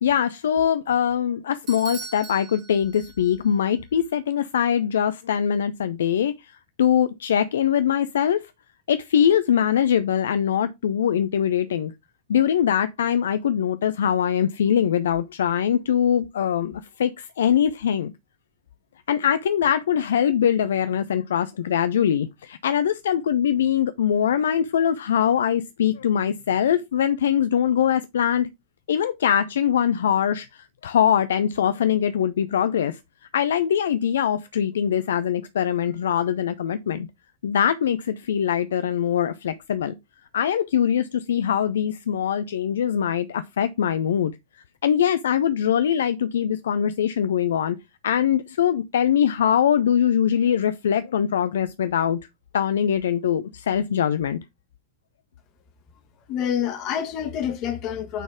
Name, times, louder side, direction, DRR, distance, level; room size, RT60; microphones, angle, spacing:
voice 1, 0.0-6.5 6.8-8.4 8.9-11.9 12.3-18.1 19.1-28.5 28.9-33.0 33.3-37.1 37.4-39.9 40.3-44.3 44.8-47.8 48.0-52.2 52.5-54.4, left 9 dB, 65° left, 0.4 m, -22 dB
Bell / Doorbell, 1.7-3.5, right 5 dB, 35° right, 3.0 m, -40 dB
voice 2, 56.3-58.2, left 9 dB, 40° left, 1.6 m, -27 dB
9.1 x 4.1 x 3.5 m
figure-of-eight pair, 90°, 0 cm